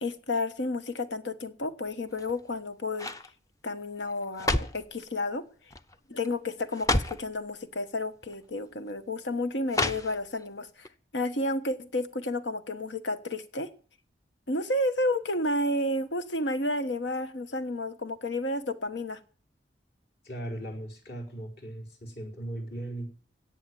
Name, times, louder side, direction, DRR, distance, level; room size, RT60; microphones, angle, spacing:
voice 1, 0.0-3.1 3.6-5.4 6.1-10.9 11.1-13.7 14.5-19.2, left 1 dB, 85° left, 10 dB, 1.3 m, -31 dB
sound 1, 2.1-2.5 2.9-3.3 4.1-4.9 5.7-6.0 6.2-6.3 6.7-7.3 8.2-8.3 9.7-10.4 10.8-10.9, left 2 dB, 20° left, 0.6 m, -30 dB
voice 2, 20.2-23.1, right 1 dB, 60° left, 0 dB, 4.8 m, -38 dB
16.5 x 6.6 x 9.5 m, 0.43 s
head